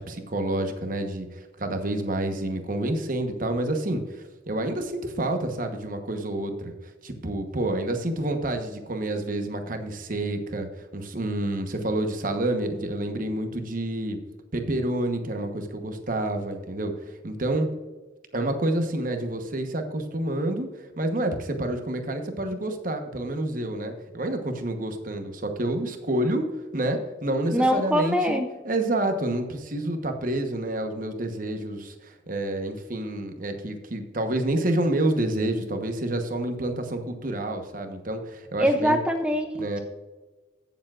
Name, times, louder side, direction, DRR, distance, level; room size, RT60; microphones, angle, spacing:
voice 1, 0.0-6.7 7.0-10.7 10.9-14.2 14.5-17.7 18.3-20.7 21.0-26.4 26.7-39.0 39.6-39.8, right 1 dB, 45° right, 6 dB, 1.1 m, -28 dB
voice 2, 27.5-28.5 38.6-39.8, equal, 5° right, 5 dB, 0.4 m, -23 dB
15.0 x 7.1 x 2.4 m, 1.2 s
head